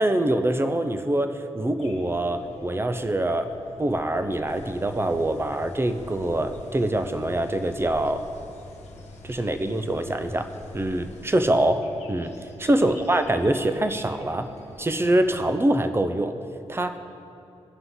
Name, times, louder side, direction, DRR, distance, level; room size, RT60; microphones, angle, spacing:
voice 1, 0.0-3.5 3.8-8.2 9.2-12.3 12.6-14.5 14.8-16.4 16.7-17.0, right 1 dB, 20° right, 8 dB, 0.6 m, -24 dB
sound 1, 1.8-15.4, left 2 dB, 70° left, 1.3 m, -48 dB
sound 2, 4.5-11.7, left 1 dB, 85° left, 1.1 m, -46 dB
17.0 x 5.8 x 3.8 m, 2.7 s
cardioid pair, 80°, 11 cm